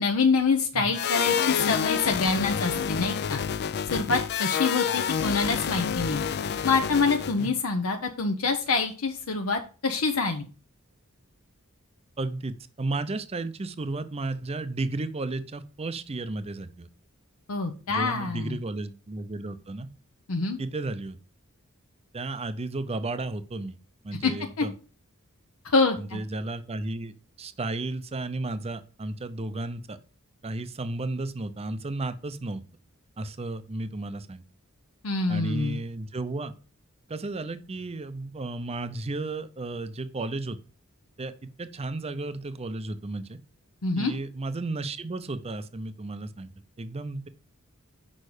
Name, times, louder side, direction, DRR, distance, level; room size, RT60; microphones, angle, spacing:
voice 1, 0.0-3.4 3.9-6.2 6.6-10.5 17.5-18.6 20.3-20.6 24.2-24.3 24.6-24.7 25.6-26.2 35.0-35.8 43.8-44.1, left 4 dB, 80° left, 4 dB, 0.8 m, -26 dB
sound 1, 0.9-7.5, left 7 dB, 50° left, 0.4 m, -28 dB
voice 2, 12.2-16.9 17.9-19.9 20.6-21.2 22.1-23.8 24.0-24.7 26.0-30.0 30.4-32.6 33.2-34.4 35.3-36.5 37.1-40.6 41.2-43.4 44.0-46.5 46.8-47.3, right 2 dB, 30° right, 13 dB, 0.6 m, -33 dB
6.4 x 5.4 x 4.8 m, 0.37 s
head